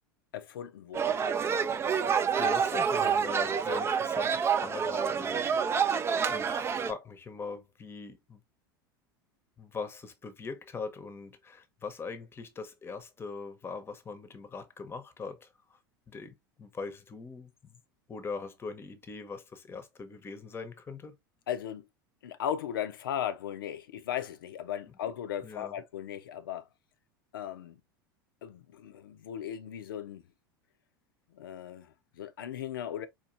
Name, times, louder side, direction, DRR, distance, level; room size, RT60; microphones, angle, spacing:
voice 1, 0.3-1.2 21.5-21.9 22.2-26.7 27.3-27.8 28.4-30.2 31.3-33.1, left 10 dB, 75° left, 0.6 m, -37 dB
sound 1, 0.9-6.9, right 7 dB, 20° right, 0.4 m, -28 dB
voice 2, 2.4-8.4 9.6-15.8 16.1-17.8 18.1-21.2 25.4-25.7, left 4 dB, 20° left, 0.8 m, -41 dB
4.5 x 2.6 x 2.5 m
hypercardioid pair, 85°, 12 cm